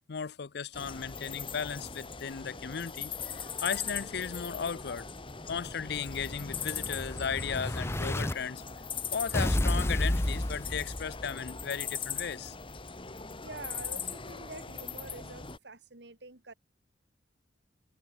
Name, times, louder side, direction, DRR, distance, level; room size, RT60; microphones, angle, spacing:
voice 1, 0.0-5.1 5.5-8.6 9.1-12.6, left 6 dB, 65° left, 0.6 m, -36 dB
sound 1, 0.7-15.6, left 6 dB, 30° left, 2.2 m, -40 dB
Explosion, 5.0-8.3 9.3-11.4, left 1 dB, 15° left, 0.8 m, -32 dB
voice 2, 13.4-16.5, right 3 dB, 70° right, 2.5 m, -46 dB
head